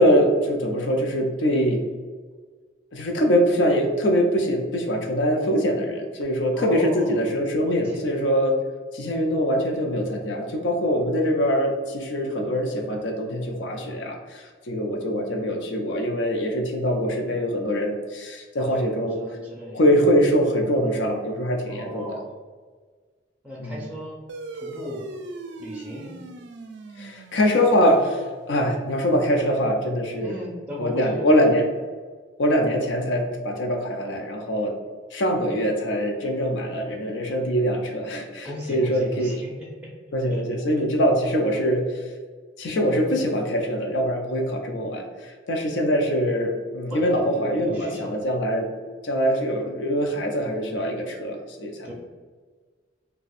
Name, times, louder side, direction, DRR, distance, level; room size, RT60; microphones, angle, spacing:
voice 1, 0.0-1.8 2.9-8.6 8.9-19.2 19.7-22.1 23.6-23.8 27.0-30.3 30.8-31.6 32.4-34.7 35.1-39.3 40.1-41.9 42.6-48.6 49.0-51.9, equal, 80° left, 3 dB, 0.6 m, -23 dB
voice 2, 6.5-7.3 7.6-8.0 18.6-19.8 21.7-22.3 23.4-24.2 24.5-25.0 25.6-26.2 30.1-31.4 38.4-39.9 40.3-40.4 46.9-48.1 51.8-51.9, equal, 5° right, -5 dB, 0.4 m, -36 dB
sound 1, 24.3-29.2, right 2 dB, 65° right, 0.4 m, -40 dB
2.5 x 2.2 x 4.0 m, 1.5 s
head